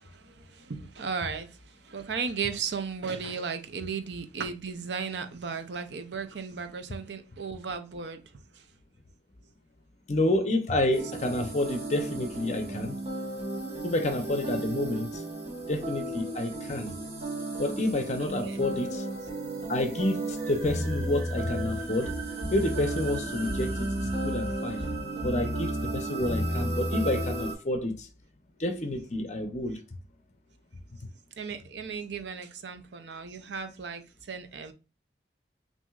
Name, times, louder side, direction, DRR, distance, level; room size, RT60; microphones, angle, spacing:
voice 1, 0.0-1.6 1.8-8.2 18.2-18.6 31.4-34.7, right 5 dB, 80° right, 0.6 m, -35 dB
voice 2, 10.1-13.0 13.8-15.2 15.7-17.0 17.6-19.1 19.7-22.1 22.5-24.8 25.2-28.1 28.6-29.8, left 1 dB, 40° left, 0.7 m, -29 dB
sound 1, 10.9-27.5, right 1 dB, 35° right, 1.2 m, -33 dB
6.1 x 2.7 x 2.4 m
head